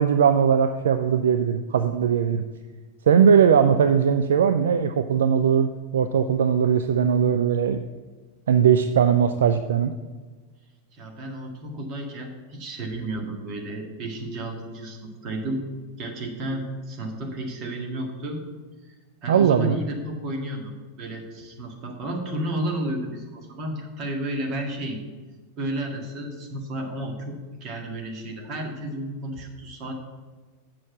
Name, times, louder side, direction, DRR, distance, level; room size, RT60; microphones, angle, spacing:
voice 1, 0.0-2.4 3.1-7.8 8.5-9.9 19.3-19.8, right 7 dB, 65° right, 9 dB, 0.4 m, -19 dB
voice 2, 10.9-15.6 16.0-18.4 18.8-18.9 19.2-20.7 21.0-25.0 25.6-29.9, right 1 dB, 35° right, 2 dB, 1.9 m, -32 dB
7.6 x 6.4 x 7.2 m, 1.3 s
figure-of-eight pair, 90°, 0 cm